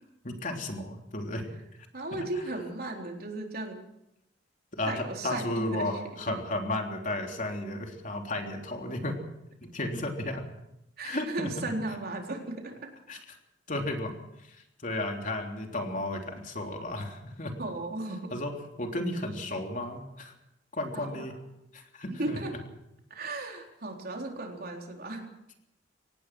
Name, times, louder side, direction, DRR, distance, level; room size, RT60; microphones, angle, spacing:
voice 1, 0.2-1.4 2.1-2.2 4.7-9.1 9.6-10.4 11.0-11.5 13.1-13.4 13.7-14.1 14.5-17.5 18.3-18.5 18.8-20.3 20.7-21.3 21.7-22.6, left 1 dB, 45° left, 2 dB, 3.4 m, -33 dB
voice 2, 1.9-3.8 4.9-6.0 11.0-12.9 17.6-18.4 20.9-21.4 22.1-22.5 23.1-25.3, right 2 dB, 55° right, 2 dB, 4.0 m, -36 dB
24.5 x 18.5 x 6.2 m, 0.83 s
head